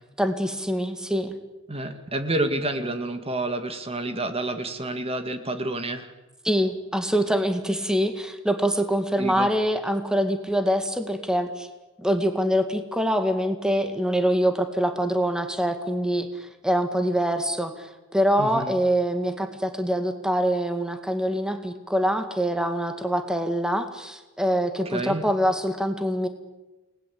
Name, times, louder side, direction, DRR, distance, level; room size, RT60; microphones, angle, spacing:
voice 1, 0.2-1.4 6.4-11.7 12.0-26.3, equal, 5° right, 7 dB, 2.1 m, -24 dB
voice 2, 1.7-6.1 9.2-9.5 18.4-18.7 24.9-25.2, right 2 dB, 30° right, 8 dB, 2.0 m, -29 dB
29.5 x 20.5 x 8.6 m, 1.1 s
head